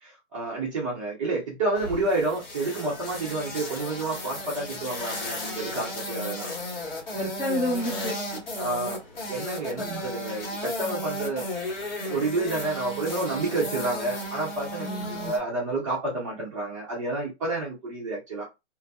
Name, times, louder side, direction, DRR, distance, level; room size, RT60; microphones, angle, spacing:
voice 1, 0.0-6.5 8.6-9.0 9.3-11.4 12.0-14.9 15.1-18.4, right 2 dB, 25° right, 0.7 m, -29 dB
sound 1, 1.7-15.4, left 1 dB, 50° left, 1.5 m, -35 dB
voice 2, 7.1-8.4 9.7-10.0 14.8-15.3, equal, 10° left, 1.1 m, -30 dB
2.7 x 2.6 x 2.3 m
hypercardioid pair, 170°, 36 cm